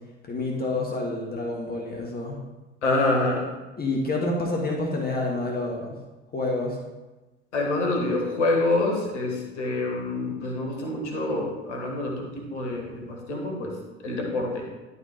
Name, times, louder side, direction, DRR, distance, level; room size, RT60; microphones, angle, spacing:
voice 1, 0.3-2.4 3.8-5.9 6.3-6.8, left 2 dB, 25° left, -1 dB, 1.6 m, -28 dB
voice 2, 2.8-3.5 7.5-13.8 14.0-14.6, left 2 dB, 80° left, 0 dB, 1.4 m, -26 dB
11.5 x 4.0 x 4.4 m, 1.1 s
figure-of-eight pair, 60°, 35 cm